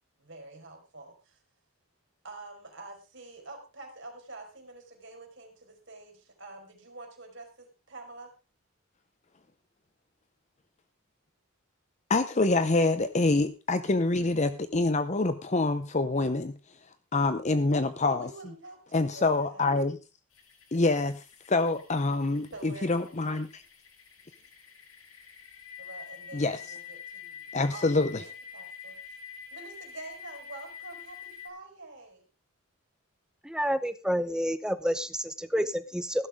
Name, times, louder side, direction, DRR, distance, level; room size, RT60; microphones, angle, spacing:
voice 1, 0.2-1.4 2.2-8.3 18.1-19.8 22.5-23.1 25.8-27.4 27.7-29.2 29.5-32.2, right 2 dB, 55° right, 3 dB, 4.6 m, -47 dB
voice 2, 12.1-16.5 17.1-18.3 18.9-20.0 20.7-21.2 21.5-23.6 26.3-26.6 27.5-28.1, left 2 dB, 35° left, 11 dB, 0.7 m, -26 dB
sound 1, 20.3-31.5, left 7 dB, 70° left, 3.0 m, -47 dB
voice 3, 33.4-36.3, equal, 5° right, 12 dB, 0.8 m, -29 dB
15.5 x 12.5 x 3.6 m, 0.29 s
head